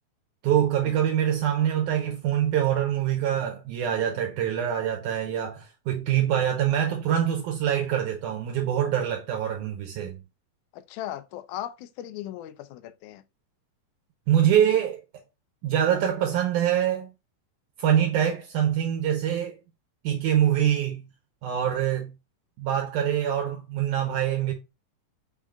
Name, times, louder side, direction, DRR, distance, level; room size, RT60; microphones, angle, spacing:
voice 1, 0.4-10.2 14.3-15.0 15.6-17.1 17.8-19.6 20.0-21.0 21.4-22.1 22.6-24.5, right 10 dB, 75° right, 2.1 m, -24 dB
voice 2, 10.7-13.2, left 12 dB, 80° left, 1.9 m, -38 dB
5.5 x 3.6 x 2.2 m
omnidirectional pair, 3.8 m